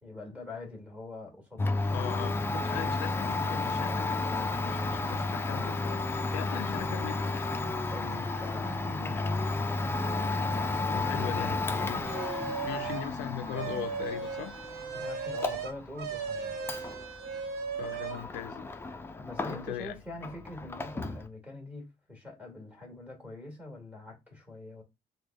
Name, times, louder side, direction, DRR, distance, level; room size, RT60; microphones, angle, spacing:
voice 1, 0.0-2.3 7.9-10.0 14.9-16.6 19.2-24.8, left 2 dB, 10° right, 1.4 m, -44 dB
Domestic sounds home sounds, 1.6-19.9 20.2-21.3, left 3 dB, 15° left, 0.4 m, -33 dB
voice 2, 1.9-4.2 4.5-6.0 6.3-7.5 10.9-12.0 12.6-14.5 17.7-18.7 19.5-19.9, left 12 dB, 90° left, 0.4 m, -39 dB
sound 1, 12.0-13.1 13.4-18.2, right 6 dB, 70° right, 0.9 m, -36 dB
3.3 x 2.2 x 3.4 m
cardioid pair, 110°, 17 cm